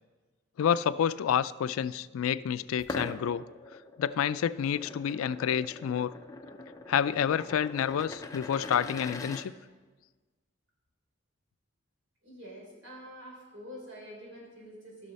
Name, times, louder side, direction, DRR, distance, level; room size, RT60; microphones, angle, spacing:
voice 1, 0.6-3.4 4.0-6.1 6.9-9.5, left 8 dB, 80° left, 16 dB, 0.3 m, -29 dB
sound 1, 2.8-9.4, left 3 dB, 15° left, 0.5 m, -42 dB
voice 2, 12.2-15.1, equal, 75° right, -2 dB, 3.6 m, -46 dB
14.0 x 6.3 x 4.1 m, 1.3 s
head